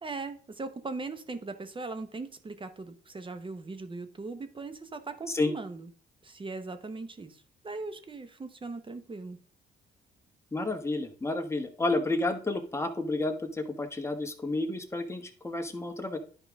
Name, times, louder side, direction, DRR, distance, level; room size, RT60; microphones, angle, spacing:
voice 1, 0.0-5.9 6.2-9.4, right 3 dB, 25° right, 10 dB, 1.0 m, -39 dB
voice 2, 10.5-16.2, left 2 dB, 15° left, 6 dB, 1.2 m, -31 dB
10.5 x 4.9 x 3.6 m, 0.43 s
cardioid pair, 90°, 20 cm